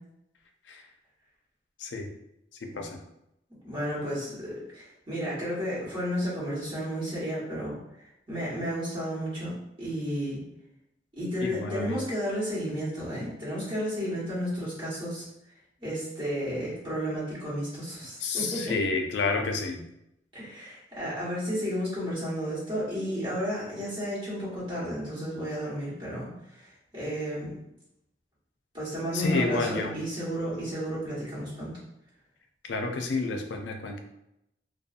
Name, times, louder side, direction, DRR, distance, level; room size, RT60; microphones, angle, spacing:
voice 1, 2.6-3.0 11.4-12.0 18.2-19.8 29.1-29.9 32.6-34.0, left 3 dB, 75° left, 4 dB, 0.4 m, -30 dB
voice 2, 3.6-7.8 8.3-9.5 9.8-10.4 11.1-15.3 15.8-18.7 20.3-27.6 28.7-31.8, equal, 30° right, -10 dB, 1.3 m, -32 dB
2.6 x 2.2 x 2.4 m, 0.83 s
head